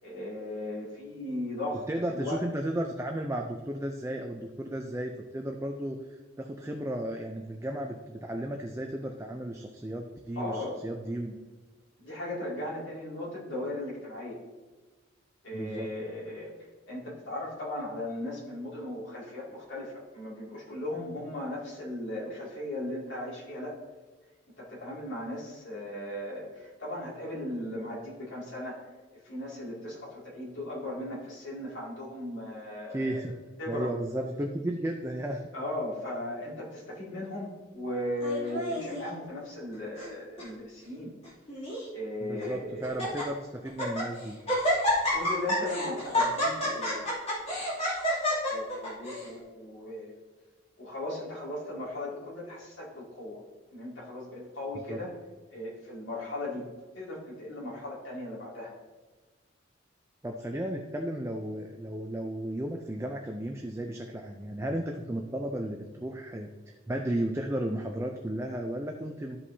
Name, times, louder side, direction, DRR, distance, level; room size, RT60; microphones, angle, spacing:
voice 1, 0.0-2.4 10.4-10.8 12.0-14.4 15.4-16.5 16.9-23.8 24.6-28.8 29.1-33.3 33.6-34.0 35.5-41.2 41.9-43.1 45.1-47.7 48.5-50.1 50.8-53.4 53.7-55.1 55.5-56.7 56.9-58.8, left 1 dB, 75° left, -6 dB, 2.5 m, -37 dB
voice 2, 1.9-11.4 15.5-15.9 32.9-33.3 33.7-35.4 42.2-44.4 54.9-55.0 60.2-66.5 66.9-69.4, right 1 dB, 15° right, 2 dB, 0.4 m, -34 dB
Laughter, 38.2-39.0 39.7-40.1 40.4-40.5 41.2-41.9 42.4-42.5 42.8-43.2 43.7-44.1 44.5-49.3, left 1 dB, 30° left, 2.8 m, -29 dB
13.0 x 5.5 x 2.8 m, 1.3 s
head